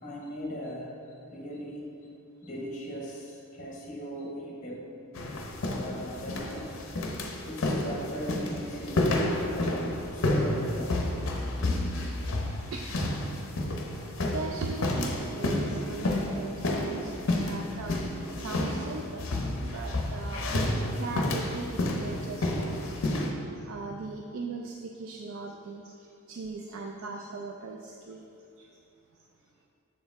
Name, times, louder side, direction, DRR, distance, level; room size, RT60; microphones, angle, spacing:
voice 1, 0.0-0.9 1.3-1.9 2.4-4.9 5.7-6.7 7.1-11.0, equal, 35° left, -3 dB, 1.1 m, -39 dB
sound 1, 5.2-23.3, left 1 dB, 60° left, 0.6 m, -30 dB
voice 2, 12.7-13.3 14.3-18.0 18.4-19.3 19.6-20.5 21.0-22.7 23.6-28.2 28.6-28.7, right 3 dB, 65° right, 1 dB, 0.3 m, -39 dB
7.2 x 4.5 x 3.4 m, 2.6 s
head